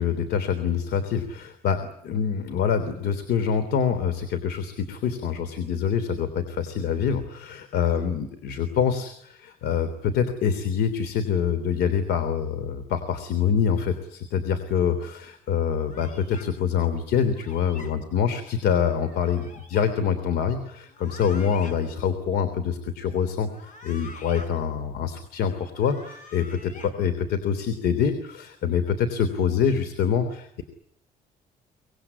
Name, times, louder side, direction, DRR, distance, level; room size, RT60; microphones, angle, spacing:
voice 1, 0.0-30.6, left 7 dB, 75° left, 11 dB, 3.3 m, -25 dB
sound 1, 15.9-16.5 17.3-17.9 19.0-19.9 20.9-21.8 23.4-24.5 25.6-26.9, left 3 dB, 50° left, 6.1 m, -45 dB
25.0 x 20.0 x 9.7 m, 0.74 s
cardioid pair, 110°, 17 cm